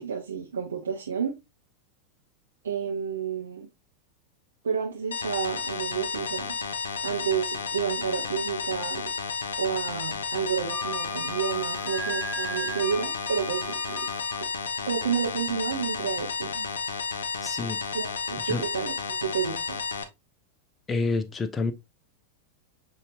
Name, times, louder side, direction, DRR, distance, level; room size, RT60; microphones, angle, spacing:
voice 1, 0.0-1.4 2.6-3.7 4.6-6.5 7.0-9.0 9.6-14.0 14.9-16.7 17.9-18.9 19.2-19.8, right 7 dB, 70° right, 0.8 m, -30 dB
sound 1, 5.1-20.0, left 5 dB, 65° left, 0.6 m, -32 dB
Wind instrument woodwind instrument, 10.7-14.4, right 1 dB, 5° right, 1.2 m, -37 dB
voice 2, 17.4-17.8 18.5-18.6 20.9-21.7, left 3 dB, 20° left, 0.5 m, -28 dB
6.7 x 2.8 x 2.5 m
figure-of-eight pair, 90°, 0 cm